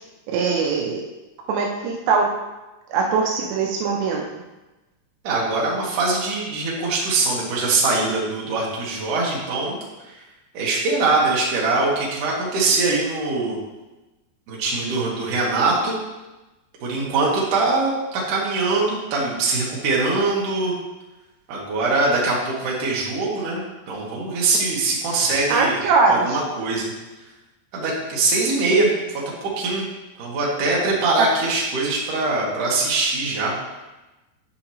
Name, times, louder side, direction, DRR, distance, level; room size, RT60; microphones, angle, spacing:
voice 1, 0.3-1.0 1.5-2.3 2.9-4.3 25.5-26.2 31.2-31.3, right 4 dB, 80° right, 0 dB, 2.9 m, -21 dB
voice 2, 5.2-9.8 10.0-10.1 10.5-13.6 14.5-16.0 16.8-20.8 21.5-23.6 23.9-25.8 26.1-26.9 27.7-28.9 29.4-29.8 30.2-33.5, right 3 dB, 60° right, -4 dB, 2.6 m, -22 dB
10.0 x 5.1 x 3.0 m, 1.1 s
omnidirectional pair, 5.2 m